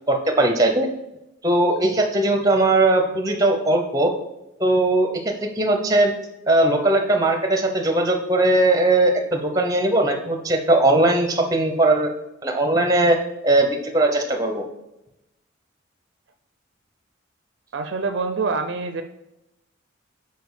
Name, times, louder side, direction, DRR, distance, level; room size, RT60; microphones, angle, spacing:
voice 1, 0.1-0.9 1.4-4.1 4.6-6.1 6.5-12.1 12.4-13.2 13.4-14.6, right 2 dB, 15° right, 4 dB, 0.7 m, -19 dB
voice 2, 17.7-19.0, right 4 dB, 60° right, 8 dB, 0.4 m, -25 dB
5.1 x 4.5 x 4.8 m, 0.89 s
head